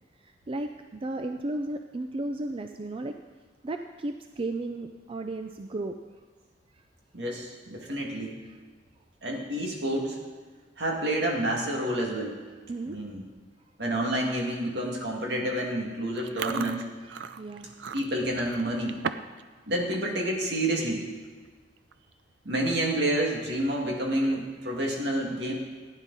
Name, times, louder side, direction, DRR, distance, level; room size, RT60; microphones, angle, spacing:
voice 1, 0.2-3.2 3.6-6.0 8.4-8.6 12.7-13.0 17.0-17.9, right 2 dB, 30° right, 6 dB, 0.4 m, -34 dB
voice 2, 7.1-8.4 9.2-10.2 10.8-12.4 12.9-13.2 13.8-16.8 17.9-19.0 19.7-21.1 22.5-25.5, right 1 dB, 70° right, 0 dB, 2.3 m, -29 dB
Chewing mastication, 16.2-19.4 19.7-20.0 20.5-20.7 21.5-21.6 21.8-22.1 22.5-22.6 24.1-24.7, right 6 dB, 90° right, 0.5 m, -37 dB
15.0 x 10.0 x 4.1 m, 1.4 s
head